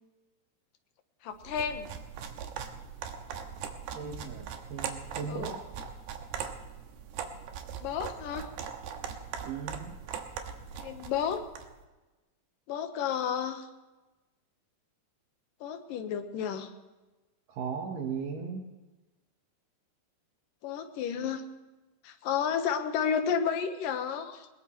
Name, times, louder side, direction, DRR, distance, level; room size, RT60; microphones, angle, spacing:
voice 1, 1.2-1.9 5.3-5.6 7.8-8.5 10.8-11.4 12.7-13.7 15.6-16.7 20.6-21.4 22.0-24.5, left 7 dB, 70° left, 6 dB, 2.6 m, -31 dB
sound 1, 1.4-11.7, right 7 dB, 85° right, 3.2 m, -40 dB
voice 2, 3.9-5.5 9.4-10.0 17.5-18.6, right 6 dB, 65° right, 2 dB, 2.7 m, -37 dB
21.5 x 20.5 x 3.1 m, 1.1 s
omnidirectional pair, 4.5 m